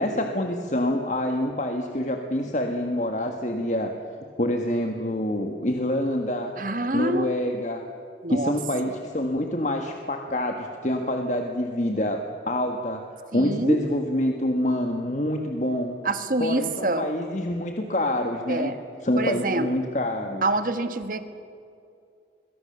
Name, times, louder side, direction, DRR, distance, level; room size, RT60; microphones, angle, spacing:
voice 1, 0.0-3.9 4.4-6.5 6.9-7.8 8.3-15.9 16.4-18.7 19.0-20.4, left 1 dB, 45° left, 4 dB, 1.6 m, -26 dB
voice 2, 6.6-7.3 8.2-8.5 13.3-13.8 16.0-17.1 18.5-18.8 19.2-19.7 20.4-21.2, right 2 dB, 50° right, 9 dB, 1.6 m, -26 dB
27.0 x 22.5 x 6.9 m, 2.4 s
head